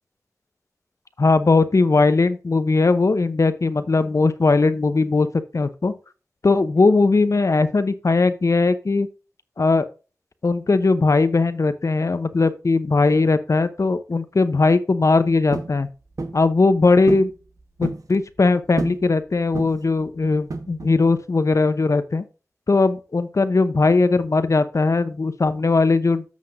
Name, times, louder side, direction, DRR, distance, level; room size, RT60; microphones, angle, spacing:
voice 1, 1.2-5.3 5.5-6.0 6.4-9.1 9.6-9.9 10.4-15.9 16.3-17.3 17.8-22.2 22.7-26.2, left 3 dB, 60° left, 0.8 m, -19 dB
sound 1, 15.5-15.8 16.2-16.4 17.1-17.3 17.6-18.1 18.8-19.1 19.5-19.9 20.5-21.0, right 3 dB, 75° right, 1.1 m, -29 dB
13.5 x 5.9 x 2.6 m
wide cardioid pair, 65°, 6 cm